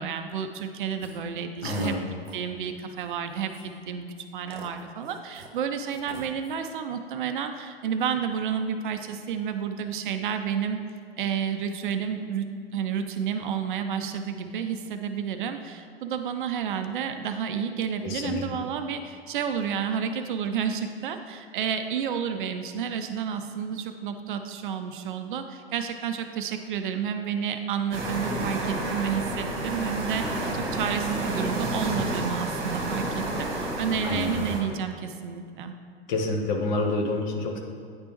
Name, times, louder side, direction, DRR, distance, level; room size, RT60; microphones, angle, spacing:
voice 1, 0.0-1.9 2.3-4.1 4.3-10.8 11.2-35.8, right 7 dB, 50° right, 7 dB, 0.5 m, -30 dB
sound 1, 1.0-1.2 1.6-2.0 2.2-2.5 3.0-3.1 3.4-3.8 4.5-5.5 5.9-6.6, right 4 dB, 70° right, 0.9 m, -43 dB
voice 2, 1.6-2.1 18.0-18.6 34.0-34.5 36.1-37.6, left 2 dB, 45° left, 1 dB, 1.0 m, -28 dB
sound 2, 27.9-34.6, right 2 dB, 30° right, 1.4 m, -30 dB
9.4 x 3.3 x 3.0 m, 2.3 s
figure-of-eight pair, 105°, 32 cm